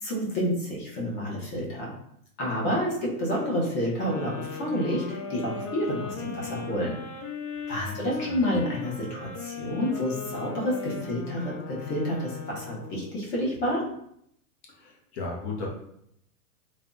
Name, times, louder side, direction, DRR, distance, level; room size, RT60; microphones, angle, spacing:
voice 1, 0.0-1.9 2.4-6.9 7.7-13.8, equal, 25° left, -4 dB, 0.7 m, -29 dB
sound 1, 4.0-13.2, left 5 dB, 75° left, 0.6 m, -38 dB
voice 2, 7.7-8.4 14.8-15.7, left 3 dB, 45° left, -1 dB, 1.0 m, -36 dB
3.4 x 2.2 x 2.5 m, 0.72 s
hypercardioid pair, 130°, 45 cm